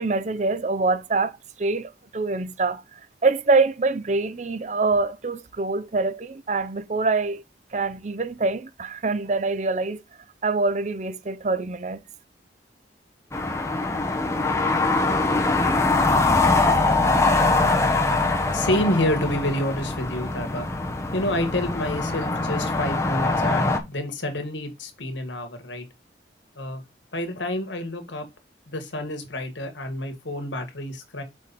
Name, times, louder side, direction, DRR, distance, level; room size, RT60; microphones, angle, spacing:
voice 1, 0.0-1.3 1.6-2.8 3.2-7.4 7.7-10.0 10.4-12.0, right 3 dB, 40° right, 0.6 m, -24 dB
sound 1, 13.3-23.8, left 3 dB, 15° left, 1.0 m, -23 dB
voice 2, 18.5-20.7 21.1-25.8 26.6-26.8 27.1-28.3 28.7-31.2, left 1 dB, 90° left, 1.9 m, -28 dB
6.4 x 4.9 x 4.2 m
head